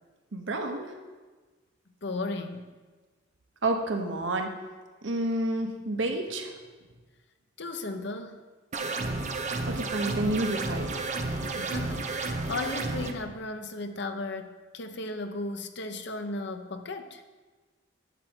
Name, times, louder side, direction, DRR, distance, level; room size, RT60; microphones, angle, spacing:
voice 1, 0.3-1.0 3.6-4.5 5.0-6.6 9.7-11.0, right 2 dB, 70° right, 4 dB, 1.1 m, -29 dB
voice 2, 2.0-2.7 7.6-8.4 11.5-17.2, left 2 dB, 60° left, 7 dB, 0.8 m, -35 dB
sound 1, 8.7-13.1, right 3 dB, 35° right, 0.8 m, -32 dB
11.0 x 7.7 x 4.5 m, 1.3 s
head